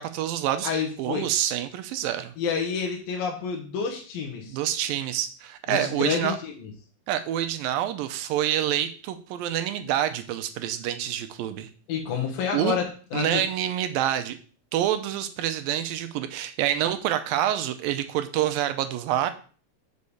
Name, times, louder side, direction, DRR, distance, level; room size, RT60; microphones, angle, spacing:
voice 1, 0.0-0.7 1.0-2.3 4.5-6.4 7.1-11.7 12.5-12.8 13.1-14.4 14.7-19.3, right 11 dB, 80° right, 9 dB, 2.3 m, -27 dB
voice 2, 0.6-1.3 2.4-4.6 5.7-6.7 11.9-13.4, left 6 dB, 70° left, 1 dB, 2.8 m, -29 dB
6.4 x 5.4 x 7.0 m, 0.41 s
omnidirectional pair, 4.4 m